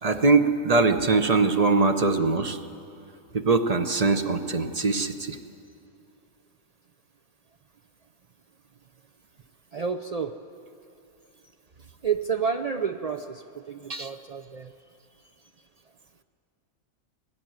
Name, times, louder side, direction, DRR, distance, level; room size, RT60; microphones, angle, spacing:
voice 1, 0.0-2.6 3.3-5.4 13.9-14.1, right 3 dB, 35° right, 8 dB, 0.7 m, -22 dB
voice 2, 9.7-10.3 12.0-14.7, right 6 dB, 65° right, 7 dB, 0.3 m, -30 dB
20.5 x 16.0 x 9.3 m, 2.7 s
omnidirectional pair, 1.4 m